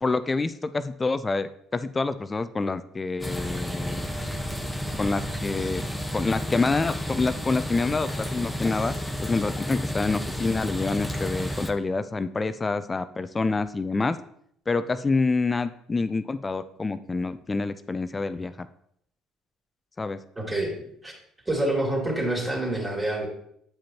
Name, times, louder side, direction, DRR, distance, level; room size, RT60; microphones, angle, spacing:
voice 1, 0.0-4.1 5.0-5.8 6.1-8.9 9.2-14.2 14.7-18.7 20.0-20.2, left 3 dB, 25° left, 12 dB, 0.4 m, -27 dB
sound 1, 3.2-11.7, equal, 5° left, 0.9 m, -31 dB
voice 2, 20.4-20.7 21.0-21.1 21.5-23.3, right 1 dB, 15° right, -2 dB, 2.7 m, -27 dB
8.7 x 5.0 x 2.8 m, 0.69 s
hypercardioid pair, 60°, 0 cm